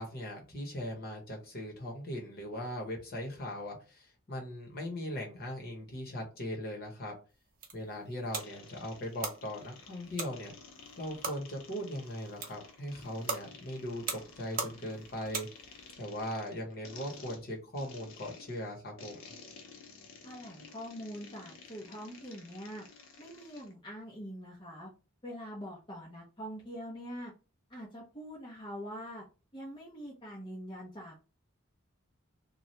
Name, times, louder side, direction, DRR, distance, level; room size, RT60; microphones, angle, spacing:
voice 1, 0.0-7.1 7.7-10.5 11.0-15.5 16.0-19.3, equal, 45° left, 0 dB, 1.0 m, -39 dB
sound 1, 7.3-15.9, right 4 dB, 40° right, 0.6 m, -42 dB
sound 2, 8.3-23.7, left 4 dB, 70° left, 0.5 m, -53 dB
voice 2, 20.2-22.8 23.2-24.9 25.2-27.3 27.7-29.2 29.5-31.2, equal, 25° left, -4 dB, 0.7 m, -44 dB
2.8 x 2.3 x 3.2 m, 0.33 s
head